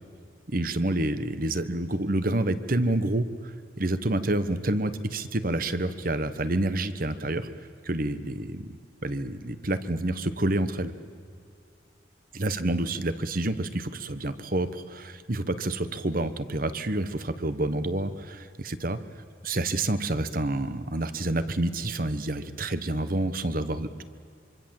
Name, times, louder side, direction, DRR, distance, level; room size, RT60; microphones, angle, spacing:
voice 1, 0.5-7.5 7.8-10.9 12.3-19.0 19.4-24.0, right 1 dB, 45° right, 12 dB, 1.2 m, -28 dB
25.5 x 25.0 x 7.7 m, 2.3 s
head